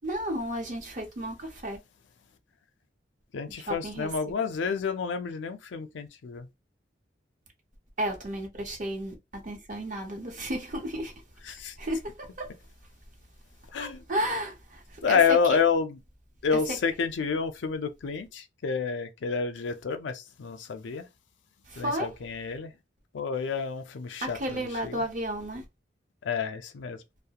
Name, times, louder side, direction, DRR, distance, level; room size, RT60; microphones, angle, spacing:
voice 1, 0.0-1.8 3.7-4.2 8.0-9.2 9.4-11.2 11.8-12.5 13.8-15.6 16.5-16.8 21.7-22.1 24.2-25.6, right 1 dB, 45° right, 0.7 m, -33 dB
voice 2, 3.3-6.5 11.5-11.8 13.7-14.0 15.0-16.0 16.4-21.1 21.8-22.7 23.1-25.0 26.2-27.0, left 6 dB, 80° left, 0.4 m, -29 dB
2.3 x 2.0 x 2.8 m
head